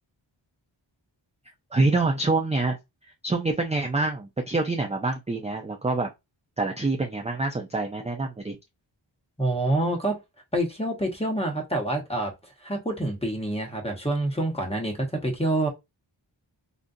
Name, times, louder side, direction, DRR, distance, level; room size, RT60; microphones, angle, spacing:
voice 1, 1.7-2.8 3.2-6.1 6.6-8.6, right 3 dB, 15° right, 0.4 m, -26 dB
voice 2, 9.4-10.2 10.5-12.3 12.6-15.7, right 1 dB, 15° left, 1.0 m, -27 dB
3.7 x 2.6 x 2.6 m
wide cardioid pair, 80°, 47 cm